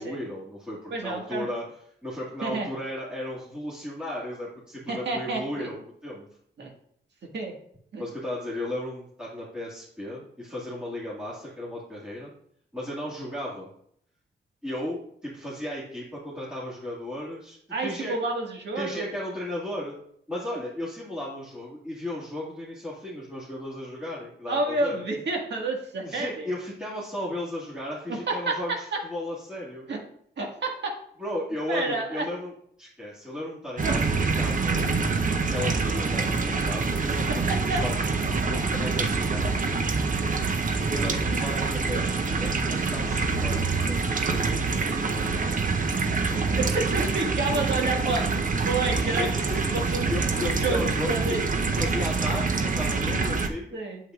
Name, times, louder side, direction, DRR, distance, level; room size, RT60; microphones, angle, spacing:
voice 1, 0.0-1.6 2.0-6.3 8.0-12.3 12.7-13.7 14.6-18.1 18.8-19.9 20.3-25.0 26.0-29.9 31.2-32.5 32.8-34.9 35.5-38.0 38.5-39.8 40.9-45.7 46.3-46.6 49.1-49.7 50.1-51.4 51.8-53.8, left 1 dB, 5° right, -8 dB, 2.0 m, -35 dB
voice 2, 0.9-1.5 2.4-2.7 4.9-5.7 6.6-6.7 7.3-7.5 7.9-8.0 17.7-19.0 24.5-26.5 28.1-28.6 28.9-29.0 29.9-30.0 30.4-31.0 31.7-32.3 33.8-33.9 37.3-37.8 40.9-41.2 46.6-50.1 50.4-51.5 53.7-54.0, right 3 dB, 70° right, 0 dB, 1.8 m, -30 dB
sound 1, 33.8-53.5, right 4 dB, 45° right, 0.8 m, -26 dB
8.2 x 7.6 x 2.4 m, 0.66 s
wide cardioid pair, 100°, 19 cm